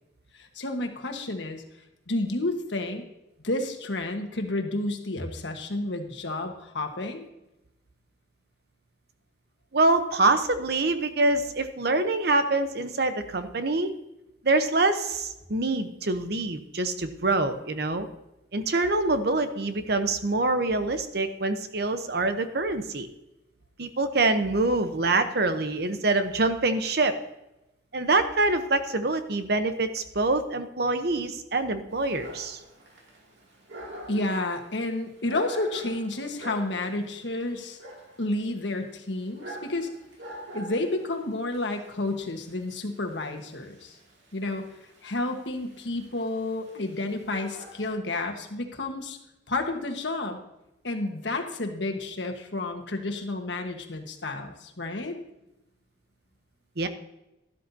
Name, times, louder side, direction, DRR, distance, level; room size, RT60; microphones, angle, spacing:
voice 1, 0.4-1.6 2.1-3.0 3.4-7.2 34.1-37.8 38.2-39.9 40.5-44.0 44.3-44.7 45.0-49.2 49.5-50.4 50.8-55.2, left 2 dB, 80° left, 5 dB, 1.4 m, -31 dB
voice 2, 9.7-13.9 14.4-18.1 18.5-23.1 23.8-27.1 27.9-32.6 56.8-56.9, right 2 dB, 60° right, 9 dB, 0.9 m, -25 dB
Dog, 31.9-47.9, equal, 90° right, 2.6 m, -45 dB
12.5 x 12.0 x 2.8 m, 0.92 s
head